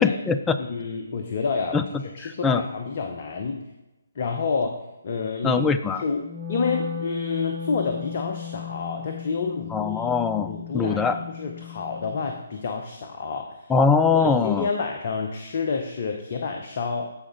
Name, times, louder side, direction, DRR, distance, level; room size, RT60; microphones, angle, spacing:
voice 1, 0.0-0.6 1.7-1.8 2.2-2.6 5.4-6.0 9.7-11.2 13.7-14.7, left 5 dB, 10° left, 10 dB, 0.4 m, -22 dB
voice 2, 0.6-1.8 2.1-3.7 4.2-5.6 6.0-10.0 10.5-13.7 14.1-17.1, left 5 dB, 45° left, 4 dB, 0.8 m, -29 dB
Wind instrument woodwind instrument, 6.2-12.4, left 7 dB, 30° right, 3.1 m, -35 dB
14.5 x 5.0 x 3.8 m, 1.0 s
figure-of-eight pair, 140°, 0 cm